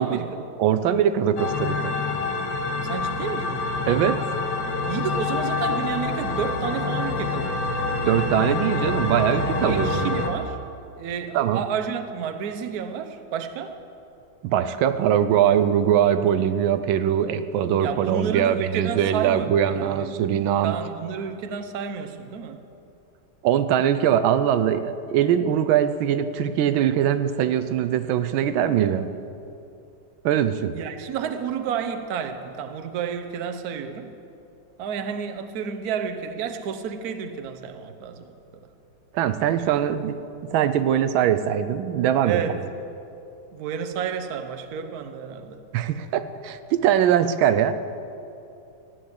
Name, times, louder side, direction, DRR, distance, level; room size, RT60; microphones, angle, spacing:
voice 1, 0.0-0.5 2.8-3.6 4.9-7.6 9.5-10.6 11.0-13.8 17.8-20.1 20.6-22.6 30.7-34.1 34.8-38.4 42.2-42.6 43.5-45.6, right 7 dB, 60° right, 1.2 m, -31 dB
voice 2, 0.6-1.9 3.9-4.3 8.1-10.2 11.3-11.6 14.4-20.7 23.4-29.1 30.2-30.7 39.1-40.2 40.5-42.6 45.7-47.8, right 10 dB, 90° right, 1.4 m, -22 dB
sound 1, 1.4-10.3, left 3 dB, 60° left, 1.7 m, -26 dB
14.5 x 9.5 x 8.0 m
omnidirectional pair, 2.1 m